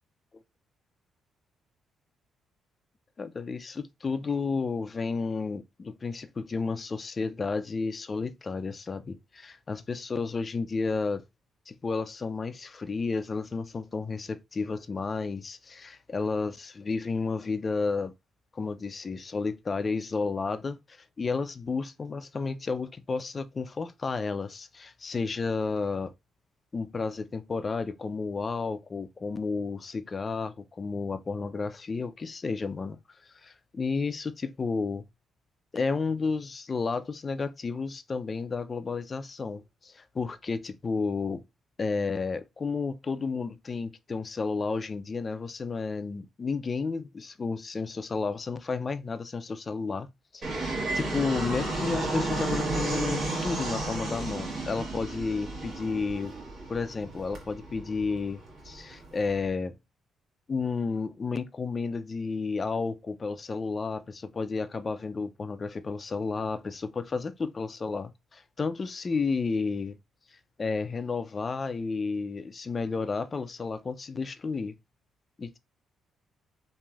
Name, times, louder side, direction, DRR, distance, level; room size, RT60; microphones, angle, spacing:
voice 1, 3.2-11.2 11.7-18.1 18.5-20.8 21.2-26.1 26.7-33.0 33.4-35.0 35.7-41.4 41.8-50.1 50.3-56.3 56.7-59.7 60.5-70.0 70.6-74.7 75.4-75.6, left 4 dB, 35° left, 0.3 m, -32 dB
Fixed-wing aircraft airplane, 50.4-59.4, right 2 dB, 60° right, 1.4 m, -33 dB
3.0 x 2.5 x 2.3 m
cardioid pair, 90°, 0 cm